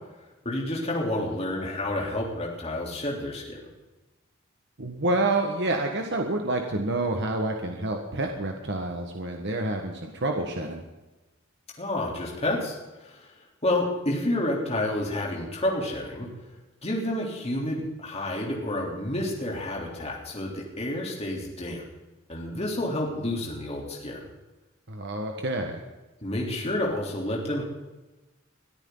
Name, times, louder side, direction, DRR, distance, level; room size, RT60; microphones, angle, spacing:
voice 1, 0.4-3.6 11.8-13.3 13.6-16.3 16.8-21.8 22.3-24.3 26.2-27.6, left 1 dB, 30° left, -2 dB, 3.4 m, -29 dB
voice 2, 4.8-10.8 24.9-25.8, right 2 dB, 60° right, 3 dB, 1.5 m, -28 dB
23.0 x 14.0 x 4.0 m, 1.1 s
head